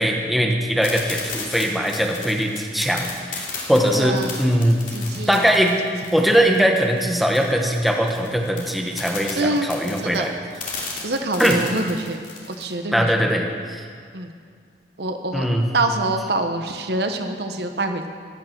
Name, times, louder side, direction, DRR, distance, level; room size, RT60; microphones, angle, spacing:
voice 1, 0.0-4.8 5.3-5.8 6.1-10.3 11.4-11.6 12.9-13.9 15.3-15.7, equal, ahead, 1 dB, 1.2 m, -20 dB
sound 1, 0.8-12.7, left 4 dB, 45° left, 2.7 m, -34 dB
voice 2, 4.0-4.4 4.9-5.5 6.0-6.1 9.4-9.7 10.0-10.3 11.0-12.2 12.5-13.3 14.1-14.3 15.0-15.5 15.7-18.1, right 2 dB, 60° right, 6 dB, 1.0 m, -25 dB
15.5 x 10.5 x 6.0 m, 2.1 s
head